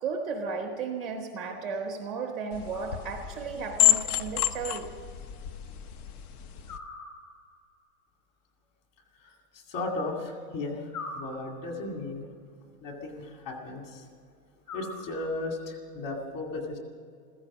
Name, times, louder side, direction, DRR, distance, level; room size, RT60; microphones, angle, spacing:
voice 1, 0.0-4.9, right 5 dB, ahead, 3 dB, 0.4 m, -34 dB
sound 1, 2.5-6.8, left 12 dB, 75° left, 1.0 m, -29 dB
sound 2, 2.7-3.6 6.7-7.7 10.9-12.0 14.6-15.6, left 3 dB, 60° left, 5.3 m, -43 dB
voice 2, 9.2-12.2 12.8-14.1 14.7-16.8, left 2 dB, 35° left, 2 dB, 2.4 m, -35 dB
15.5 x 15.0 x 6.2 m, 2.2 s
supercardioid pair, 175°, 45 cm